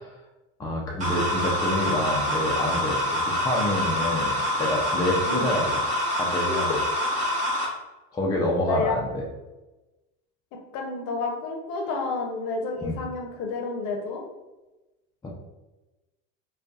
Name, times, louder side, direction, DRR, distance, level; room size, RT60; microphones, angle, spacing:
voice 1, 0.6-5.8 6.1-6.8 8.1-9.2 12.8-13.0 15.2-15.3, left 1 dB, 10° left, -2 dB, 0.4 m, -27 dB
sound 1, 1.0-7.7, left 1 dB, 20° right, 0.9 m, -26 dB
voice 2, 10.7-14.2, left 3 dB, 60° left, 1 dB, 0.7 m, -30 dB
2.5 x 2.3 x 2.3 m, 1.1 s
supercardioid pair, 100°, 35 cm